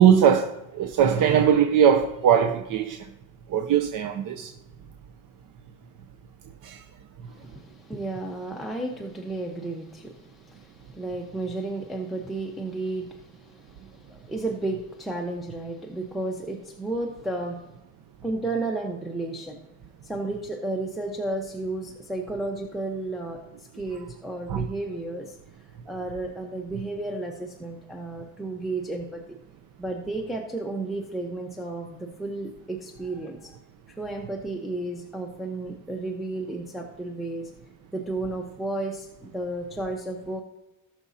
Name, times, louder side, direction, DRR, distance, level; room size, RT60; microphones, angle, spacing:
voice 1, 0.0-3.0 3.5-4.5 6.6-6.8 24.5-24.6, right 8 dB, 75° right, 0.8 m, -20 dB
voice 2, 7.3-17.7 18.2-19.6 20.0-23.4 23.7-25.4 25.9-29.2 29.8-33.6 33.9-37.5 37.9-40.4, right 2 dB, ahead, 1.0 m, -33 dB
18.5 x 6.2 x 2.8 m
cardioid pair, 120°, 32 cm